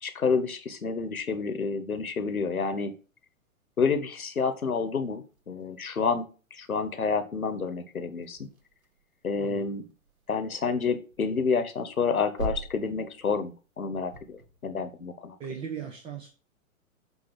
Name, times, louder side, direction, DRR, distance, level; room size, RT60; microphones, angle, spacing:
voice 1, 0.0-2.9 3.8-8.5 9.2-9.8 10.3-14.4 14.6-15.4, left 5 dB, 85° left, 9 dB, 1.2 m, -29 dB
sound 1, 4.1-14.7, right 2 dB, 80° right, 1.2 m, -44 dB
voice 2, 15.4-16.3, right 7 dB, 15° right, 2 dB, 0.6 m, -37 dB
8.1 x 2.8 x 6.0 m, 0.35 s
figure-of-eight pair, 115°, 42 cm